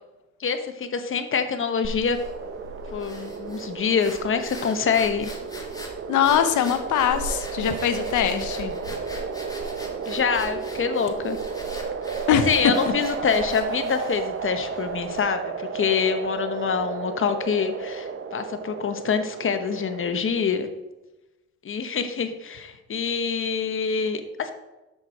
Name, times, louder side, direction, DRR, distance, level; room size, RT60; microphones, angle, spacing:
voice 1, 0.4-2.2 2.9-5.4 10.1-11.4 12.3-20.7 21.6-24.5, left 6 dB, 45° left, 8 dB, 1.1 m, -26 dB
sound 1, 1.8-15.3, left 1 dB, 10° left, 1.8 m, -41 dB
sound 2, 2.2-20.1, right 6 dB, 45° right, 0.8 m, -33 dB
voice 2, 6.1-8.7 12.3-12.5, left 9 dB, 75° left, 9 dB, 1.0 m, -22 dB
7.4 x 6.1 x 4.9 m, 1.0 s
cardioid pair, 90°, 30 cm